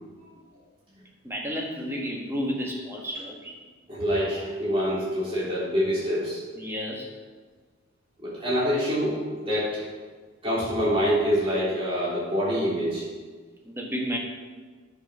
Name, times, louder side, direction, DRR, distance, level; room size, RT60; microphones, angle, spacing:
voice 1, 1.2-3.5 6.6-7.1 13.7-14.2, equal, 10° right, -2 dB, 1.7 m, -31 dB
voice 2, 3.9-6.4 8.2-9.8 10.4-13.0, equal, 25° right, -9 dB, 3.5 m, -26 dB
10.0 x 6.4 x 5.6 m, 1.4 s
head